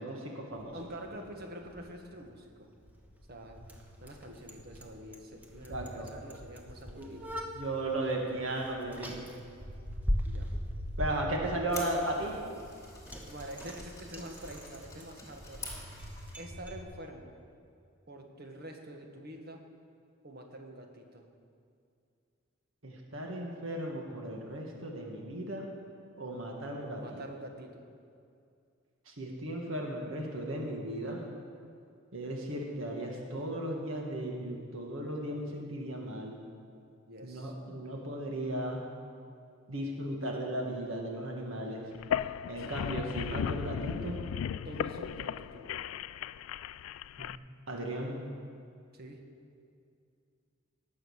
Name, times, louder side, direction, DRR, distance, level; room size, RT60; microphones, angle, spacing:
voice 1, 0.0-0.7 5.7-6.1 6.9-7.2 7.5-9.3 11.0-12.4 22.8-25.7 26.2-27.2 29.1-31.2 32.1-36.4 37.2-38.8 39.7-41.8 42.5-44.2 47.2-47.3 47.7-48.3, right 1 dB, 70° right, 0 dB, 1.7 m, -36 dB
Bicycle, 0.5-16.8, equal, 10° right, 1.1 m, -41 dB
voice 2, 0.7-2.7 3.3-3.6 4.0-7.3 10.2-10.5 13.3-15.7 16.4-17.3 18.1-19.7 20.2-21.3 26.8-27.8 37.1-37.5 42.6-42.7 44.6-45.8 48.9-49.2, right 1 dB, 50° right, 3 dB, 1.5 m, -46 dB
sound 1, 11.4-16.5, left 3 dB, 15° left, 2.3 m, -48 dB
sound 2, 41.9-47.4, left 9 dB, 75° left, 0.3 m, -36 dB
18.5 x 6.5 x 6.4 m, 2.4 s
head